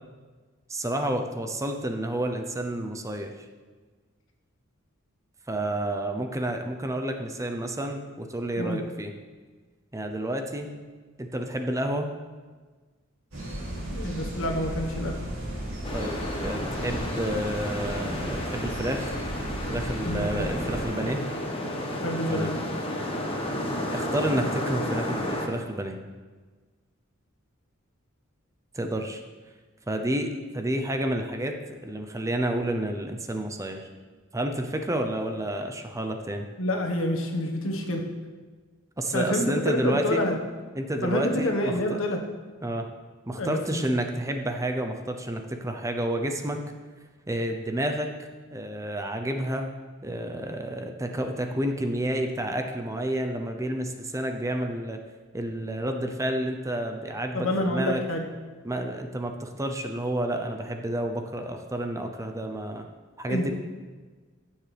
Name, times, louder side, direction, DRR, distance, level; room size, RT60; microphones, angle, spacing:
voice 1, 0.7-3.3 5.5-9.1 9.9-10.7 11.2-12.1 15.9-19.1 19.7-21.2 22.3-22.5 23.9-26.0 28.7-29.2 29.9-33.9 34.3-36.5 39.0-40.2 40.7-42.0 42.6-42.9 43.3-46.6 47.3-48.1 48.5-49.7 50.0-55.0 55.3-58.0 58.6-62.9 63.2-63.5, right 1 dB, 15° right, 5 dB, 0.6 m, -30 dB
sound 1, 13.3-20.9, right 1 dB, 85° right, 3.0 m, -35 dB
voice 2, 13.9-15.2 20.0-20.5 22.0-22.5 36.6-38.0 39.1-40.4 41.0-42.2 43.4-43.6 57.3-58.2 63.3-63.5, left 1 dB, 75° left, 1 dB, 1.4 m, -27 dB
sound 2, 15.8-25.5, left 1 dB, 25° left, 1.4 m, -32 dB
15.0 x 7.2 x 3.4 m, 1.4 s
head